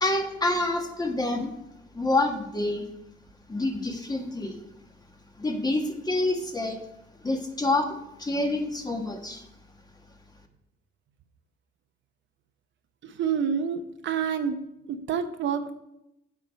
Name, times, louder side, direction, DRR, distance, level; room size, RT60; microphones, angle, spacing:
voice 1, 0.0-1.5 1.9-2.9 3.5-4.6 5.4-6.8 7.2-9.5, left 2 dB, 20° left, 4 dB, 1.4 m, -27 dB
voice 2, 13.0-14.6 14.9-15.7, right 7 dB, 70° right, 7 dB, 0.9 m, -28 dB
8.3 x 4.8 x 6.4 m, 0.84 s
cardioid pair, 90°, 20 cm